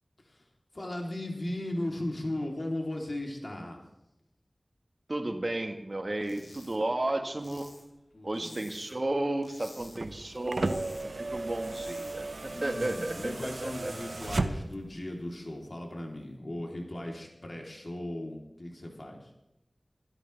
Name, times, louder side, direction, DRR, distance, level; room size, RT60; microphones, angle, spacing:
voice 1, 0.7-3.8 8.1-8.6 12.5-19.3, left 1 dB, 50° left, 0 dB, 3.5 m, -37 dB
voice 2, 5.1-7.7 8.2-13.9, right 1 dB, 45° right, 6 dB, 1.6 m, -33 dB
sound 1, 6.2-6.8 7.0-9.1 9.4-10.0 10.3-11.1 11.4-13.2 13.6-14.4, left 2 dB, 75° left, 3.2 m, -53 dB
sound 2, 9.8-14.9 16.1-16.2, right 2 dB, 75° right, 0.9 m, -35 dB
25.0 x 12.5 x 3.5 m, 0.89 s
wide cardioid pair, 55°, 0 cm